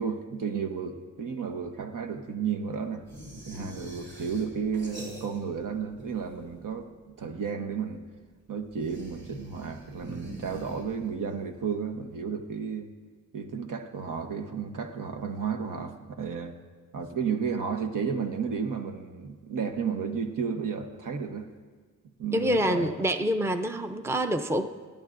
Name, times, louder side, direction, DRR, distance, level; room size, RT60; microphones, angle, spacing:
voice 1, 0.0-3.0 3.5-6.9 7.2-8.0 8.5-12.9 13.3-16.6 16.9-21.5 22.2-22.9, right 6 dB, 80° right, 5 dB, 1.1 m, -32 dB
sound 1, 3.1-5.7 5.9-6.7 8.7-11.2, right 1 dB, 35° right, 4.5 m, -44 dB
voice 2, 22.3-24.7, equal, 10° right, 8 dB, 0.5 m, -26 dB
28.5 x 10.5 x 2.6 m, 1.5 s
wide cardioid pair, 100°, 32 cm